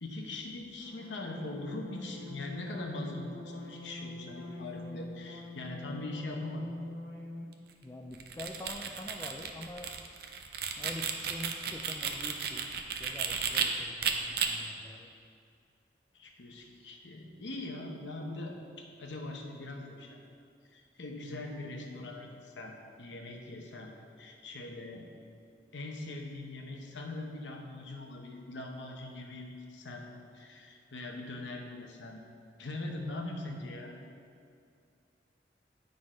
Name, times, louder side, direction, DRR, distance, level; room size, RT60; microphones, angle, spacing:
voice 1, 0.0-6.6 16.1-18.6 19.0-20.2 20.7-23.9 24.2-25.1 25.7-30.1 30.3-32.2 32.6-34.0, left 2 dB, 85° left, 1 dB, 0.9 m, -41 dB
sound 1, 0.8-7.6, left 2 dB, 65° left, 0.7 m, -44 dB
voice 2, 7.8-10.0 10.8-15.1, left 1 dB, 15° left, 3 dB, 0.3 m, -45 dB
sound 2, 8.1-13.7 14.0-14.5, right 7 dB, 55° right, 0.5 m, -33 dB
9.6 x 3.9 x 5.0 m, 2.4 s
head